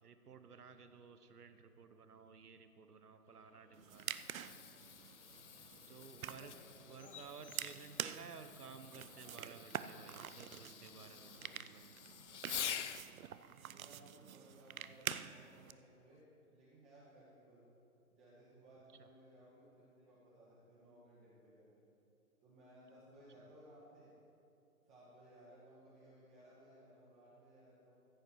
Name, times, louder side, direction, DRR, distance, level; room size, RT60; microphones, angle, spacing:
voice 1, 0.0-4.4 5.0-5.1 5.9-12.0 19.0-19.1, right 6 dB, 85° right, 10 dB, 1.1 m, -55 dB
sound 1, 3.2-12.3, left 6 dB, 20° left, 0.8 m, -65 dB
sound 2, 3.7-15.7, right 9 dB, 65° right, 0.6 m, -47 dB
Fireworks, 3.8-13.1 15.1-15.4 16.1-16.2, left 8 dB, 55° left, 0.6 m, -48 dB
voice 2, 7.0-7.5 13.3-16.3 16.5-17.7 18.1-21.8 22.4-24.2 24.9-28.0, right 1 dB, 20° right, -9 dB, 2.2 m, -61 dB
15.0 x 8.2 x 4.7 m, 2.7 s
hypercardioid pair, 155°, 45 cm